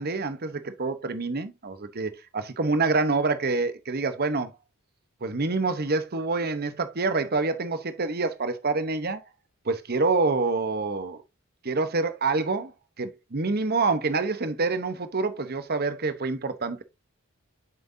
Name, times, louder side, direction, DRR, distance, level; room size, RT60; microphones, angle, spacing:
voice 1, 0.0-4.5 5.2-9.2 9.6-11.2 11.6-12.7 13.0-16.8, right 3 dB, 45° right, 0.9 m, -27 dB
7.6 x 6.0 x 2.7 m
head